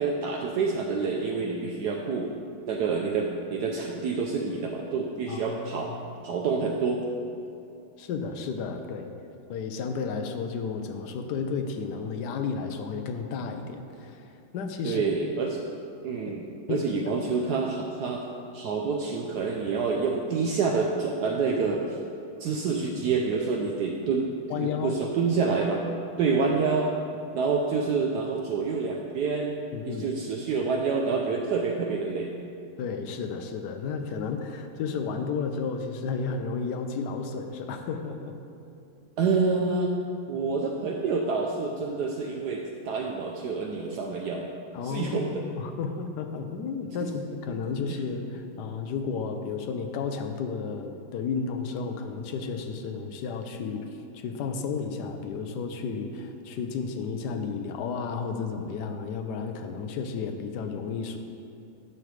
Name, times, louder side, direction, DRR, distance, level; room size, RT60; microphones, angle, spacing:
voice 1, 0.0-2.4 2.7-5.9 6.2-7.0 14.8-15.6 16.0-18.2 18.5-22.0 22.4-25.8 26.2-26.9 27.3-32.3 39.2-39.9 40.3-44.5 44.8-45.4 47.0-47.1 47.9-48.0, right 4 dB, 80° right, 1 dB, 0.9 m, -27 dB
voice 2, 5.3-5.9 8.0-9.1 9.5-15.0 16.3-16.4 16.7-17.1 24.5-25.0 29.7-30.1 32.8-38.4 44.7-53.8 54.1-61.2, left 5 dB, 70° left, 6 dB, 1.0 m, -32 dB
10.5 x 6.4 x 3.2 m, 2.6 s
omnidirectional pair, 2.2 m